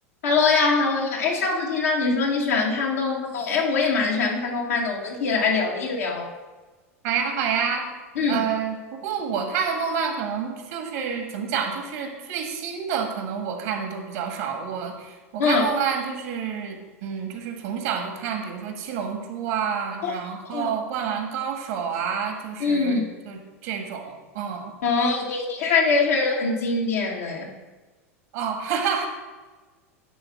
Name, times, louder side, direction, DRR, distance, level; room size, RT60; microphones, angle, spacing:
voice 1, 0.2-6.3 8.1-8.4 15.4-15.7 20.0-20.1 20.5-20.7 22.6-23.0 24.8-27.5, left 4 dB, 75° left, -2 dB, 1.6 m, -23 dB
voice 2, 7.0-7.8 8.3-24.7 28.3-29.1, right 7 dB, 65° right, 4 dB, 1.7 m, -28 dB
10.0 x 3.5 x 5.9 m, 1.3 s
hypercardioid pair, 90°, 8 cm